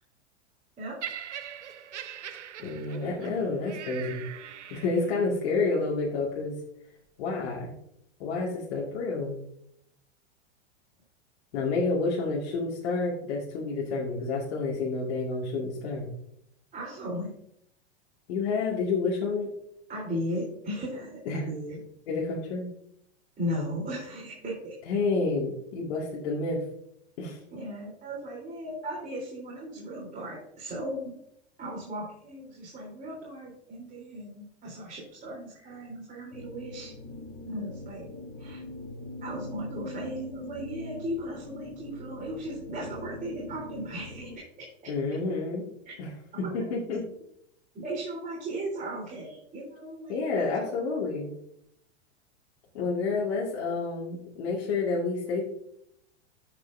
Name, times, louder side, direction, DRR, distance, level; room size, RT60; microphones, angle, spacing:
Laughter, 1.0-5.3 6.1-6.2, right 9 dB, 85° right, 0.8 m, -41 dB
voice 1, 2.6-4.2 4.7-6.5 7.2-7.7 8.2-9.4 11.5-16.1 18.3-19.5 21.3-21.5 22.1-22.7 24.9-26.6 27.2-27.4 44.9-45.7 46.0-46.1 46.5-47.0 50.1-51.3 52.7-55.4, left 3 dB, 65° left, -4 dB, 2.3 m, -29 dB
voice 2, 16.7-17.3 19.9-21.8 23.4-24.8 27.5-31.2 31.6-36.9 37.5-38.1 38.4-38.6 39.2-44.7 45.9-46.0 46.4-46.6 47.7-50.7, equal, 25° right, -5 dB, 3.7 m, -36 dB
sound 1, 36.3-44.4, left 2 dB, 30° left, 3.2 m, -42 dB
13.5 x 6.1 x 2.7 m, 0.75 s
hypercardioid pair, 105°, 34 cm